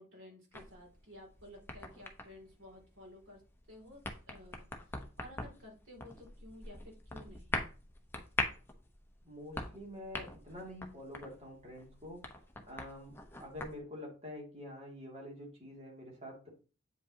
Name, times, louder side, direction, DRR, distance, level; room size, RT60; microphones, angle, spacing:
voice 1, 0.0-3.4 3.7-4.0 4.3-7.6, left 1 dB, 80° right, 0 dB, 2.6 m, -54 dB
sound 1, 0.5-13.8, left 2 dB, 10° left, 0.8 m, -43 dB
voice 2, 9.2-12.3 12.7-16.5, left 1 dB, 35° right, -2 dB, 2.4 m, -47 dB
8.4 x 5.4 x 2.8 m, 0.35 s
head